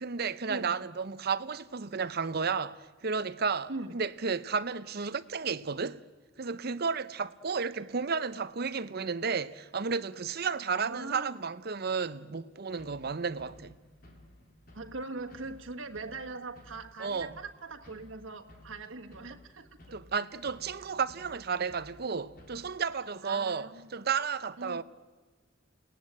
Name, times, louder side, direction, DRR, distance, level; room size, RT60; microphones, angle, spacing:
voice 1, 0.0-6.0 6.4-13.8 17.0-17.3 19.9-24.8, right 5 dB, 50° right, 0.7 m, -33 dB
voice 2, 10.8-11.4 14.7-19.9 23.2-23.9 24.6-24.8, right 3 dB, 90° right, 1.5 m, -41 dB
sound 1, 12.7-22.8, left 1 dB, 50° left, 3.3 m, -56 dB
29.5 x 18.5 x 8.9 m
head